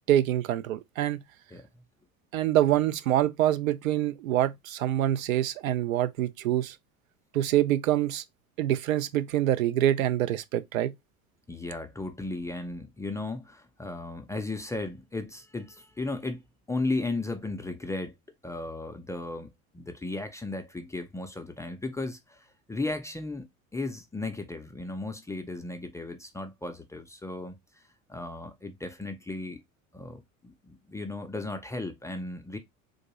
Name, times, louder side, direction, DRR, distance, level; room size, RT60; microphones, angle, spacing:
voice 1, 0.1-1.2 2.3-6.8 7.3-8.2 8.6-10.9, right 12 dB, 75° right, 0.5 m, -25 dB
voice 2, 11.5-16.4 16.7-18.1 18.4-23.5 23.7-27.8 28.1-29.6 29.9-32.6, left 2 dB, 10° left, 0.3 m, -35 dB
3.8 x 2.5 x 2.9 m
figure-of-eight pair, 70°, 42 cm